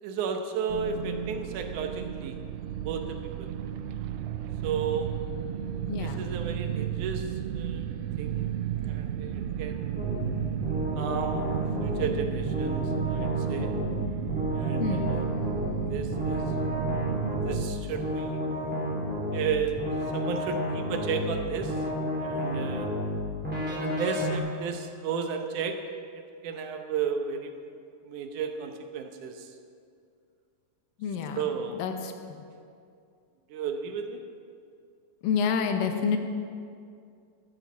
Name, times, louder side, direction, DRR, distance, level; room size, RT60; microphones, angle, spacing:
voice 1, 0.0-2.4 2.8-3.5 4.6-5.1 6.0-8.5 8.9-10.1 11.0-11.5 11.8-13.7 14.5-15.2 15.9-16.5 17.4-18.4 19.3-19.8 20.1-21.8 22.2-22.9 23.5-25.8 26.1-27.5 28.0-29.5 31.4-31.8 33.5-34.3, right 6 dB, 70° right, 5 dB, 2.2 m, -33 dB
sound 1, 0.7-17.7, right 11 dB, 90° right, 2.3 m, -33 dB
voice 2, 5.9-6.3 14.8-15.2 31.0-32.1 35.2-36.2, left 6 dB, 80° left, 6 dB, 2.7 m, -28 dB
sound 2, 10.0-24.4, left 1 dB, 5° right, 2.5 m, -32 dB
12.5 x 8.5 x 7.3 m, 2.3 s
omnidirectional pair, 3.9 m